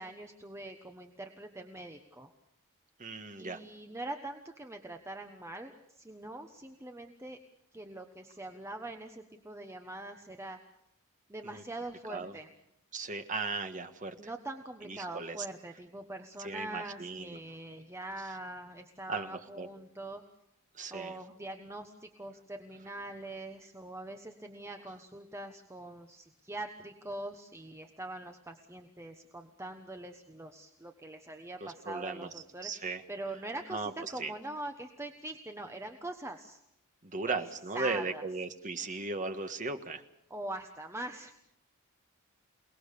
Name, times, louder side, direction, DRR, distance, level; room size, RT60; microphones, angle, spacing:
voice 1, 0.0-2.3 3.4-7.4 7.7-10.6 11.3-12.5 14.2-20.2 20.9-36.6 37.3-37.4 37.7-38.2 40.3-41.4, right 2 dB, 10° right, 5 dB, 1.2 m, -43 dB
voice 2, 3.0-3.6 11.5-11.6 12.1-12.3 12.9-14.1 14.9-15.4 16.4-17.4 19.1-19.7 20.8-21.1 31.6-32.3 32.6-33.0 33.7-33.9 34.2-34.3 37.1-40.0, right 3 dB, 35° right, 7 dB, 1.6 m, -36 dB
28.5 x 19.0 x 6.8 m, 0.79 s
head